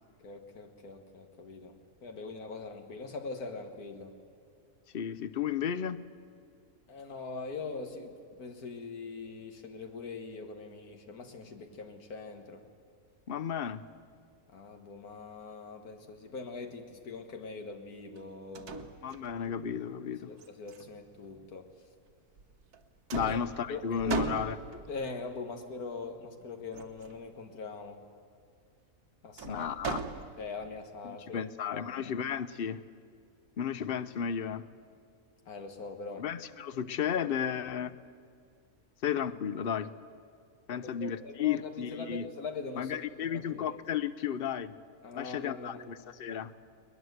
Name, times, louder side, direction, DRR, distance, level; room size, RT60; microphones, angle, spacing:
voice 1, 0.2-4.1 6.9-12.7 14.5-18.9 20.3-21.7 23.1-23.4 23.7-24.2 24.9-28.0 29.2-29.7 30.4-32.1 35.5-36.2 40.7-43.8 45.0-45.9, left 4 dB, 80° left, 5 dB, 1.9 m, -42 dB
voice 2, 4.9-6.0 13.3-13.8 19.0-20.3 23.1-24.8 29.4-30.0 31.0-32.8 33.6-34.7 36.2-38.0 39.0-39.9 40.7-42.2 42.8-44.7 45.2-46.5, left 8 dB, 50° left, 15 dB, 0.7 m, -33 dB
sound 1, 18.2-18.3 18.6-19.6 20.4-21.4 22.4-22.8 23.1-25.0 26.7-27.2 29.4-30.7, right 6 dB, 85° right, 1.7 m, -39 dB
21.0 x 20.5 x 8.0 m, 2.2 s
omnidirectional pair, 1.6 m